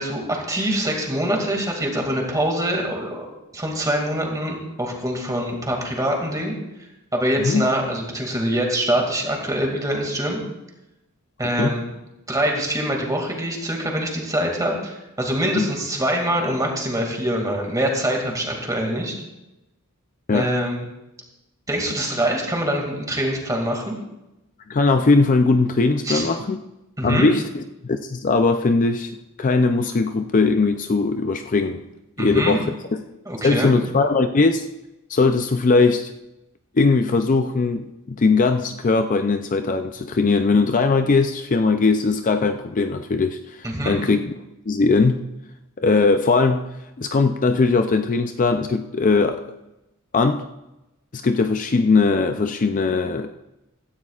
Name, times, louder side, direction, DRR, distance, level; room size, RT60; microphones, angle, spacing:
voice 1, 0.0-3.3 3.5-6.5 6.8-10.4 11.4-11.8 12.3-19.1 20.3-20.9 21.7-23.9 26.0-26.3 27.0-27.3 32.2-32.6 33.3-33.7 43.6-44.0, right 1 dB, 15° right, 1 dB, 2.2 m, -24 dB
voice 2, 11.4-11.7 15.6-15.7 20.3-20.5 24.7-26.6 27.0-29.1 29.4-31.8 32.2-32.7 33.4-34.7 35.1-36.1 36.7-44.3 44.7-45.2 45.8-46.7 47.0-49.4 50.1-50.4 51.1-53.3, left 3 dB, 35° left, 7 dB, 0.4 m, -20 dB
16.0 x 13.5 x 2.4 m, 0.95 s
head